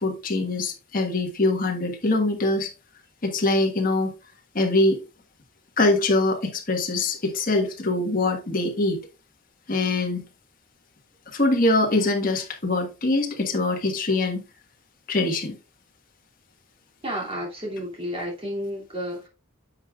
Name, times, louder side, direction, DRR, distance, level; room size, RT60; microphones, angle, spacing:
voice 1, 0.0-2.7 3.2-4.1 4.5-5.0 5.8-9.0 9.7-10.2 11.3-14.4 15.1-15.6, left 2 dB, 40° left, 1.4 m, -23 dB
voice 2, 17.0-19.3, equal, 25° right, 2.6 m, -31 dB
9.5 x 6.5 x 2.4 m
head